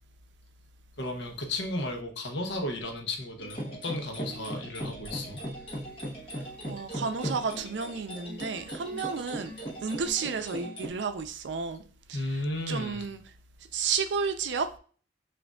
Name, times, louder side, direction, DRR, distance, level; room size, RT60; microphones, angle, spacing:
voice 1, 1.0-5.4 12.1-13.1, left 1 dB, 70° left, 0.8 m, -34 dB
sound 1, 3.4-10.9, equal, 30° left, 1.1 m, -38 dB
voice 2, 6.7-11.8 12.1-12.4 12.7-13.2 13.7-14.7, right 5 dB, 70° right, 0.5 m, -32 dB
6.1 x 2.5 x 2.3 m
head